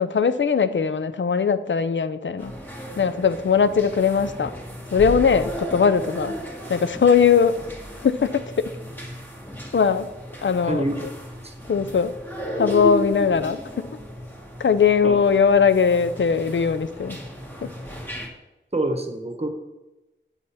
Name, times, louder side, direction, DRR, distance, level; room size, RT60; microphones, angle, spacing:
voice 1, 0.0-2.5 3.0-4.5 4.9-6.3 6.7-7.6 8.0-8.7 9.7-10.1 10.4-10.8 11.7-12.1 12.6-14.0 14.6-17.2 17.6-17.7, left 6 dB, 75° left, 0.5 m, -20 dB
sound 1, 2.4-18.3, equal, 10° left, 1.7 m, -35 dB
voice 2, 10.7-11.1 11.4-11.5 15.0-15.2 18.7-19.5, right 1 dB, 30° right, 1.2 m, -26 dB
7.5 x 5.3 x 5.7 m
wide cardioid pair, 55°, 20 cm